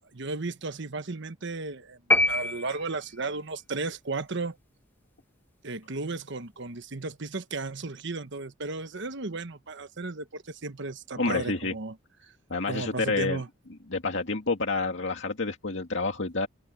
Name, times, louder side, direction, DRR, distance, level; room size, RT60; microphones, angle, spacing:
voice 1, 0.1-4.6 5.6-12.0 12.7-13.5, right 3 dB, 65° right, 1.2 m, -34 dB
sound 1, 2.1-3.3, left 1 dB, 10° left, 1.7 m, -25 dB
voice 2, 11.2-11.7 12.5-13.4 13.9-16.5, left 3 dB, 65° left, 2.3 m, -28 dB
head